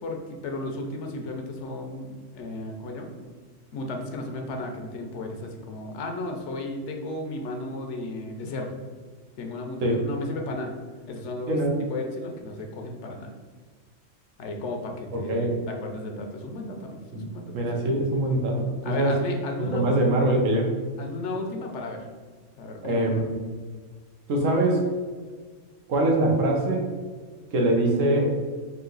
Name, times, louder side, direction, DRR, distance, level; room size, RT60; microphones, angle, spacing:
voice 1, 0.0-3.1 3.7-8.7 9.4-10.7 11.1-11.6 11.9-13.3 14.4-17.7 18.8-20.2 21.0-22.0 22.6-23.1, left 2 dB, 70° left, 3 dB, 0.9 m, -34 dB
voice 2, 17.5-19.1 19.7-20.7 22.8-23.3 24.3-24.8 25.9-26.9 27.5-28.3, right 1 dB, 90° right, 0 dB, 1.2 m, -23 dB
3.9 x 2.7 x 3.8 m, 1.5 s
omnidirectional pair, 1.3 m